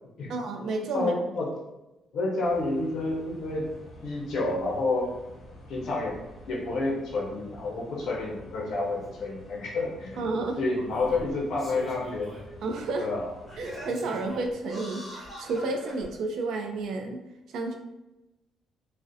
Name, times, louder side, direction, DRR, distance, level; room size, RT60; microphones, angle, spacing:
voice 1, 0.3-1.1 10.2-10.6 12.6-13.1 13.6-17.2 17.5-17.8, right 3 dB, 60° right, 4 dB, 0.3 m, -31 dB
voice 2, 0.9-1.5 2.1-3.6 4.0-5.1 5.7-6.2 6.5-10.3 10.6-12.3 13.0-13.3, left 2 dB, 55° left, -3 dB, 0.6 m, -29 dB
sound 1, 2.4-13.9, left 1 dB, 35° left, 0.9 m, -49 dB
Singing, 9.0-9.1 10.1-10.2 10.8-12.5 12.9-13.0 13.5-16.1 16.8-16.9, equal, 10° right, 0.8 m, -42 dB
2.4 x 2.0 x 2.6 m, 0.97 s
cardioid pair, 170°, 0 cm